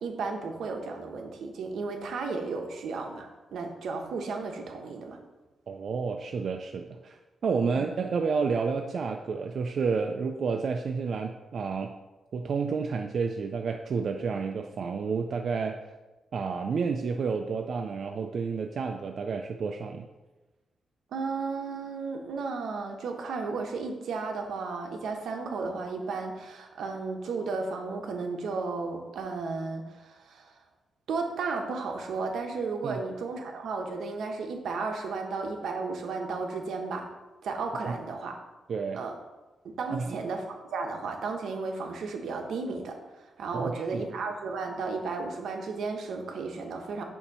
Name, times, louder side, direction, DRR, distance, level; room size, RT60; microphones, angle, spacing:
voice 1, 0.0-5.2 7.6-7.8 21.1-30.5 31.1-37.1 37.4-38.4 38.9-39.1 39.6-47.0, right 4 dB, 80° right, 3 dB, 0.9 m, -34 dB
voice 2, 5.7-11.9 12.3-15.8 16.3-20.1 32.8-33.0 37.9-38.0 38.7-39.0 39.9-40.2 43.5-44.1, right 5 dB, 50° right, 3 dB, 0.3 m, -30 dB
7.0 x 2.7 x 5.3 m, 1.1 s
wide cardioid pair, 145°, 0 cm